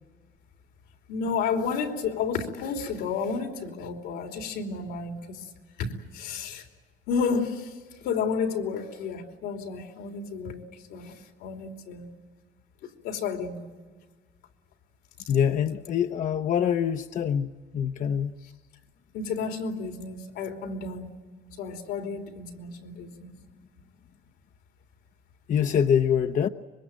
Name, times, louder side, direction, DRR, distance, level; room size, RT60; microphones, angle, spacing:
voice 1, 1.1-5.5 5.8-6.7 7.1-12.1 13.0-13.6 19.1-21.1 21.6-23.3, left 5 dB, 90° left, 3.3 m, -31 dB
voice 2, 15.3-18.3 25.5-26.5, left 8 dB, 50° left, 0.8 m, -25 dB
25.5 x 22.5 x 9.1 m
cardioid pair, 110°, 17 cm